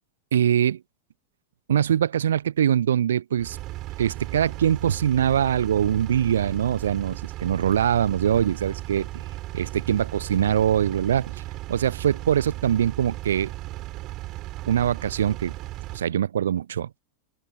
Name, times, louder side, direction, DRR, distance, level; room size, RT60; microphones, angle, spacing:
voice 1, 0.3-0.8 1.7-3.6 4.0-9.1 9.5-11.4 11.7-13.5 14.7-15.6 15.9-17.0, right 9 dB, 65° right, 1.0 m, -23 dB
Engine, 3.4-16.0, right 17 dB, 35° right, 4.4 m, -36 dB
open air
figure-of-eight pair, 90°, 0 cm